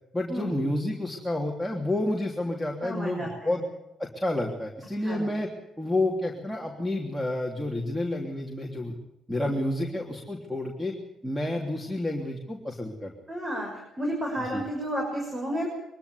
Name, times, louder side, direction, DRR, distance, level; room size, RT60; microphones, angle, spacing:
voice 1, 0.1-3.6 4.0-5.5 5.8-8.9 9.3-10.9 11.2-13.1 14.5-14.6, left 1 dB, ahead, -2 dB, 3.2 m, -29 dB
voice 2, 2.8-3.6 5.0-5.3 13.3-13.7 14.0-15.7, equal, 25° right, 1 dB, 6.4 m, -31 dB
23.5 x 13.0 x 9.9 m, 0.90 s
cardioid pair, 90°, 0 cm